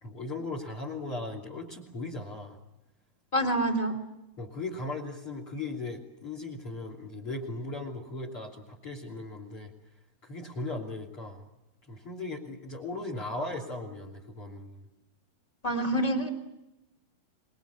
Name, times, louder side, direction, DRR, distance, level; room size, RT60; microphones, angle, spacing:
voice 1, 0.0-2.6 4.4-9.7 10.2-11.5 11.9-14.9, left 2 dB, 35° left, 5 dB, 3.2 m, -37 dB
voice 2, 3.3-3.9 15.6-16.3, right 1 dB, 10° left, 3 dB, 2.1 m, -26 dB
26.5 x 22.0 x 8.4 m, 0.90 s
omnidirectional pair, 5.3 m